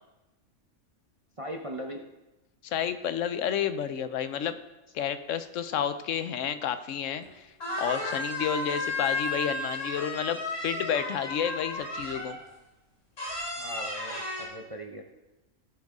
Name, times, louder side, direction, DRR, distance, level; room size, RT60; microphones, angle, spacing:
voice 1, 1.4-2.0 13.5-15.0, equal, 30° right, 1 dB, 0.7 m, -39 dB
voice 2, 2.6-4.6 4.9-7.5 7.8-12.4, left 8 dB, 80° left, 11 dB, 1.1 m, -30 dB
sound 1, 7.2-7.3 7.6-12.4 13.2-14.5, left 2 dB, 55° left, 3.3 m, -33 dB
16.5 x 7.9 x 3.7 m, 1.0 s
omnidirectional pair, 1.3 m